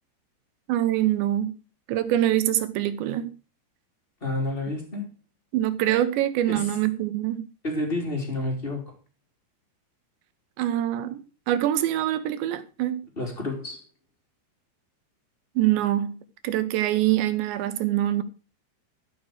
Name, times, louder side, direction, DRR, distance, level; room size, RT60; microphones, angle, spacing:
voice 1, 0.7-1.5 1.9-3.3 5.5-7.5 10.6-13.0 15.6-18.2, right 13 dB, 85° right, 3.3 m, -24 dB
voice 2, 4.2-5.0 6.5-6.7 7.6-8.9 13.2-13.8, left 2 dB, 15° left, 3.0 m, -29 dB
13.5 x 6.1 x 6.5 m
omnidirectional pair, 5.0 m